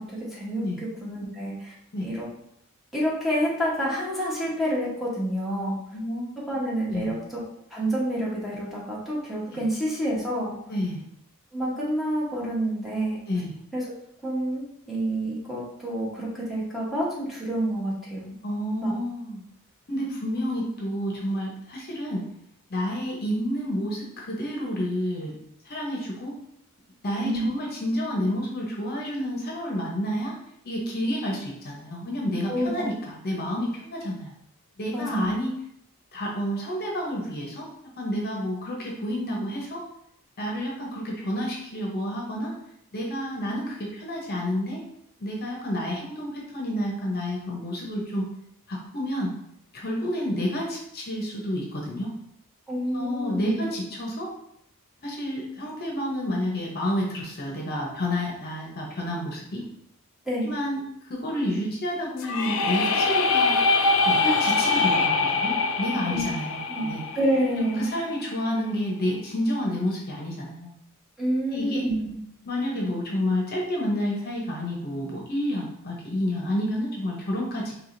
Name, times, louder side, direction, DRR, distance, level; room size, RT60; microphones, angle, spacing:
voice 1, 0.0-1.7 2.0-2.3 2.9-5.8 6.5-7.4 7.7-10.6 11.5-13.2 13.7-13.8 14.2-18.3 18.8-18.9 27.2-27.5 32.5-32.7 34.9-35.3 52.7-53.6 60.3-60.5 64.2-64.4 66.1-66.2 66.7-66.9 67.1-67.9 71.2-72.1, right 1 dB, ahead, -7 dB, 1.1 m, -28 dB
voice 2, 5.9-6.4 6.9-7.1 9.5-9.6 10.7-11.0 13.3-13.5 18.4-19.4 19.9-22.3 22.7-25.4 25.6-26.3 27.0-30.4 30.6-34.3 34.8-35.5 36.1-37.7 38.0-39.8 40.4-42.6 42.9-44.8 45.2-48.3 48.7-49.3 49.7-52.1 52.9-54.3 55.0-59.6 60.4-63.6 64.0-67.0 67.6-70.7 71.5-71.9 72.5-77.7, equal, 45° left, -1 dB, 0.8 m, -29 dB
sound 1, 62.2-68.1, left 3 dB, 65° left, 0.4 m, -24 dB
4.7 x 3.0 x 2.6 m, 0.73 s
head